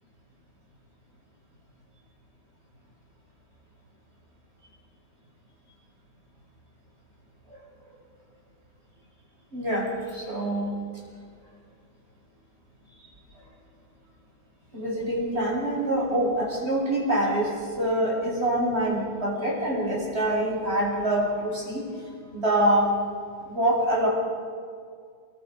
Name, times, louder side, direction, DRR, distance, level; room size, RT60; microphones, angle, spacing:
voice 1, 9.5-10.7 14.7-17.5 17.8-21.8 22.3-22.9 23.4-24.1, right 1 dB, 30° right, -3 dB, 7.5 m, -25 dB
29.0 x 21.5 x 5.5 m, 2.1 s
omnidirectional pair, 2.2 m